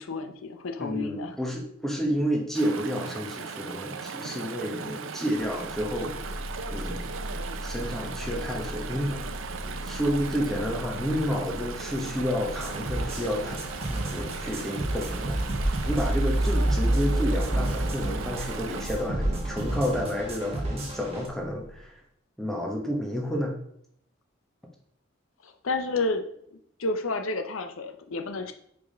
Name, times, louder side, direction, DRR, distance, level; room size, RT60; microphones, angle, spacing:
voice 1, 0.0-1.4 25.4-26.2 26.8-28.5, left 3 dB, 80° left, 7 dB, 0.7 m, -30 dB
voice 2, 0.8-6.4 6.7-7.0 7.6-9.5 9.8-13.5 13.9-15.4 15.9-22.0 22.4-23.6, equal, ahead, -1 dB, 1.1 m, -30 dB
Chatter / Stream, 2.5-18.9, right 6 dB, 75° right, 0.6 m, -38 dB
sound 1, 5.3-21.9, left 1 dB, 50° left, 1.4 m, -40 dB
sound 2, 12.5-21.3, right 1 dB, 30° right, 1.3 m, -29 dB
5.1 x 4.8 x 5.0 m, 0.70 s
head